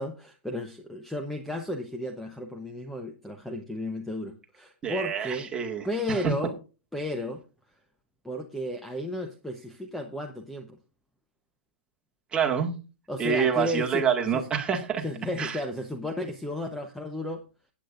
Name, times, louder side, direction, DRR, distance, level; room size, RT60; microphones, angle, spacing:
voice 1, 0.0-5.5 5.8-6.5 6.9-7.4 8.2-10.8 13.1-14.0 14.3-14.5 15.0-17.4, left 1 dB, ahead, 4 dB, 0.9 m, -33 dB
voice 2, 4.8-6.3 12.3-12.7 13.2-15.0 15.4-15.6, right 7 dB, 15° right, 1 dB, 1.9 m, -27 dB
16.5 x 8.6 x 2.5 m, 0.31 s
hypercardioid pair, 140°, 6 cm